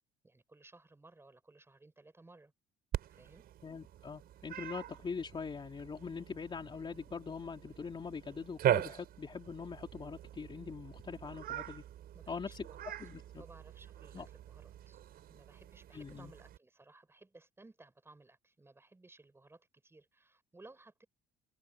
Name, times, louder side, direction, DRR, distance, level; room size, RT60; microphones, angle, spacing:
voice 1, 0.2-2.5 3.1-3.4 12.1-12.8 13.3-15.0 15.3-21.0, right 2 dB, 15° right, 7.9 m, -59 dB
Cat, 2.9-16.6, right 12 dB, 65° right, 5.2 m, -41 dB
voice 2, 3.6-11.8 12.3-12.7 13.0-13.4 14.1-14.3 15.9-16.3, left 5 dB, 30° left, 3.5 m, -43 dB
cardioid pair, 110°, 17 cm